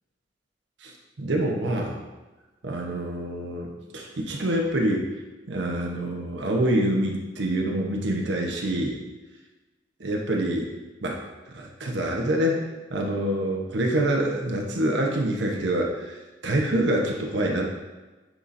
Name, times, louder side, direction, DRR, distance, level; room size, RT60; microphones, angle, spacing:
voice 1, 0.8-2.0 2.6-5.1 5.5-9.0 10.0-10.7 11.0-11.2 11.5-17.7, right 1 dB, 80° right, 0 dB, 0.9 m, -26 dB
9.0 x 4.1 x 2.6 m, 1.2 s
head